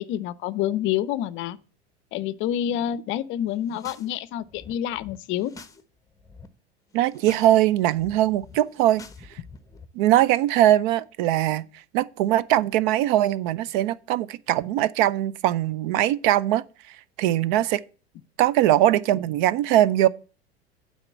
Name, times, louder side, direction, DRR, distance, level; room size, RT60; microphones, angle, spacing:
voice 1, 0.0-1.6 2.1-5.5, left 11 dB, 40° left, 0.6 m, -28 dB
sound 1, 3.5-4.1 4.4-5.8 6.1-6.5 6.9-7.5 7.8-9.9, left 3 dB, 10° left, 0.9 m, -47 dB
voice 2, 6.9-9.1 9.9-17.8 18.4-20.1, right 13 dB, 50° right, 0.5 m, -21 dB
8.9 x 4.2 x 7.2 m
figure-of-eight pair, 85°, 32 cm